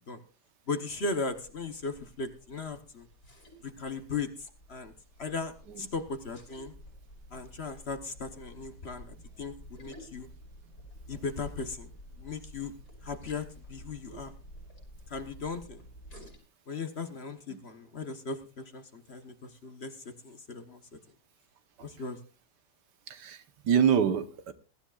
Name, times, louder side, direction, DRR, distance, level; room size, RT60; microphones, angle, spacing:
voice 1, 0.7-3.1 3.6-4.9 5.2-6.7 7.3-10.3 11.1-11.9 12.2-12.7 13.0-14.3 15.1-15.8 16.7-20.0 20.2-20.8 21.8-22.2, left 4 dB, 40° left, 8 dB, 1.3 m, -37 dB
sound 1, 1.1-16.4, equal, 80° left, 6.4 m, -51 dB
voice 2, 23.1-24.5, right 8 dB, 80° right, 10 dB, 1.7 m, -26 dB
22.0 x 13.0 x 2.4 m, 0.35 s
omnidirectional pair, 1.8 m